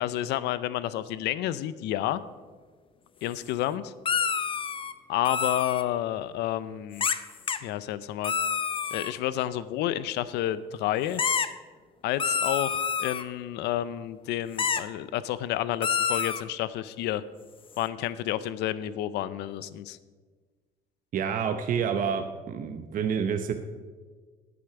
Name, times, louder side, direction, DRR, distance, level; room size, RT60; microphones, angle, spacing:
voice 1, 0.0-2.2 3.2-3.9 5.1-7.0 7.6-8.3 8.9-11.2 12.0-17.2 17.8-20.0, left 13 dB, 85° left, 16 dB, 0.5 m, -30 dB
sound 1, 4.1-4.9 5.2-5.8 7.0-7.2 7.5-7.6 8.2-9.1 11.2-11.5 12.2-13.2 14.6-14.8 15.8-16.4, left 6 dB, 30° left, 0.6 m, -27 dB
voice 2, 21.1-23.5, right 7 dB, 55° right, 6 dB, 0.8 m, -28 dB
10.0 x 8.7 x 5.9 m, 1.4 s
cardioid pair, 110°, 17 cm